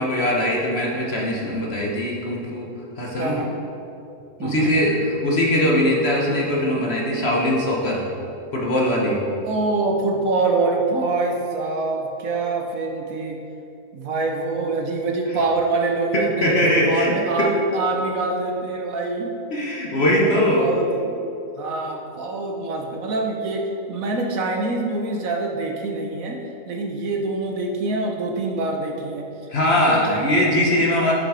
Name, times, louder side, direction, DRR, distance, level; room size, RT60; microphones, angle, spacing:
voice 1, 0.0-3.4 4.4-8.1 8.5-9.2 16.1-17.5 19.5-20.7 29.5-31.1, left 1 dB, 45° left, -2 dB, 1.2 m, -21 dB
voice 2, 3.2-3.5 4.4-4.7 9.4-13.4 13.9-21.2 21.6-26.4 26.7-29.3 29.7-30.4 31.0-31.1, right 3 dB, 65° right, 2 dB, 1.2 m, -25 dB
6.4 x 6.3 x 4.9 m, 2.8 s
omnidirectional pair, 1.6 m